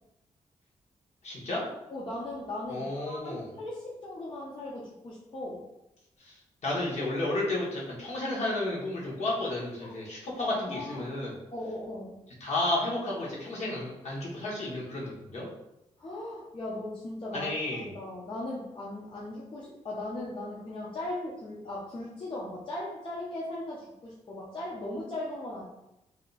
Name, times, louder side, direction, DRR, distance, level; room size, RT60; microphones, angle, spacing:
voice 1, 1.2-1.6 2.7-3.5 6.2-6.3 6.6-11.4 12.4-15.5 17.3-17.9, left 2 dB, 60° left, -4 dB, 1.2 m, -32 dB
voice 2, 1.9-5.6 9.8-10.0 10.5-11.1 11.5-12.2 16.0-25.7, left 1 dB, 40° left, -5 dB, 0.6 m, -38 dB
2.8 x 2.2 x 3.9 m, 0.89 s
wide cardioid pair, 120°, 13 cm